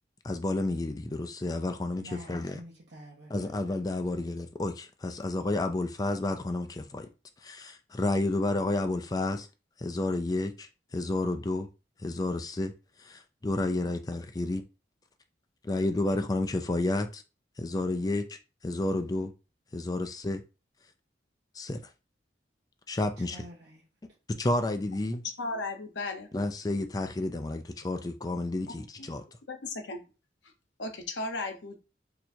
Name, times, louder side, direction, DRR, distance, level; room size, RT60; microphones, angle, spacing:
voice 1, 0.2-2.0 2.3-2.6 3.3-7.1 7.4-9.5 9.8-11.7 12.0-12.7 13.0-14.6 15.6-17.2 17.6-18.4 18.6-19.3 19.7-20.4 21.5-21.8 22.9-23.4 24.4-25.2 26.3-29.2, left 2 dB, 20° left, 0.4 m, -30 dB
voice 2, 2.0-3.6 23.2-23.8, equal, 70° right, 0.9 m, -48 dB
voice 3, 25.4-26.3 29.0-29.1 29.5-30.0 30.8-31.8, left 2 dB, 90° left, 0.8 m, -35 dB
2.8 x 2.4 x 4.2 m
head